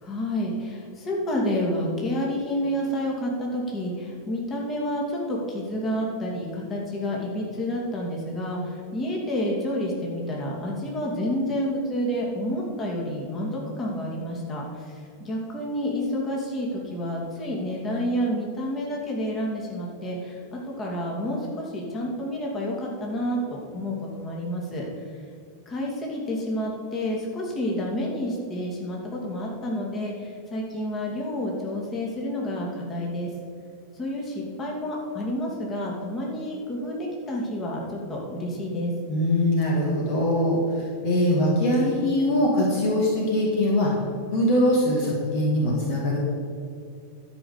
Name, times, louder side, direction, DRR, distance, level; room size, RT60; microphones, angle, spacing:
voice 1, 0.0-24.9 25.7-33.3 33.9-38.9, equal, 25° left, -2 dB, 2.7 m, -29 dB
voice 2, 39.1-43.9 44.3-46.2, left 1 dB, 45° left, -2 dB, 2.0 m, -22 dB
12.0 x 5.6 x 6.8 m, 2.4 s
figure-of-eight pair, 90°, 0 cm